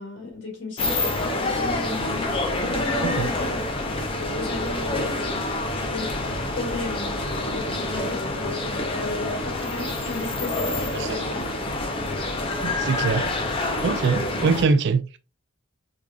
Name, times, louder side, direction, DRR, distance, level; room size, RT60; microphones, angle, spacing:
voice 1, 0.0-2.3 2.6-3.6 4.0-5.2 5.7-6.1 6.5-11.5, left 2 dB, 55° left, 1.8 m, -34 dB
sound 1, 0.8-14.6, left 2 dB, 25° left, 0.5 m, -27 dB
voice 2, 12.6-13.3 13.8-15.2, right 4 dB, 50° right, 0.3 m, -23 dB
4.7 x 2.6 x 2.3 m
head